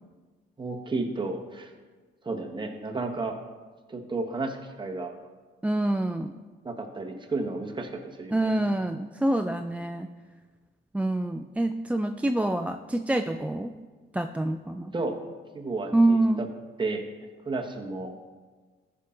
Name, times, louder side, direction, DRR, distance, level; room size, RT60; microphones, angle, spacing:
voice 1, 0.6-1.7 2.2-3.4 3.9-5.1 6.6-8.6 14.9-15.2 15.5-16.5 16.8-17.0 17.4-18.1, right 3 dB, 25° right, 2 dB, 1.3 m, -32 dB
voice 2, 5.6-6.3 8.3-10.1 10.9-13.7 14.1-14.9 15.9-16.4, right 1 dB, 5° right, 6 dB, 0.3 m, -26 dB
14.5 x 5.8 x 3.8 m, 1.4 s
cardioid pair, 90°, 20 cm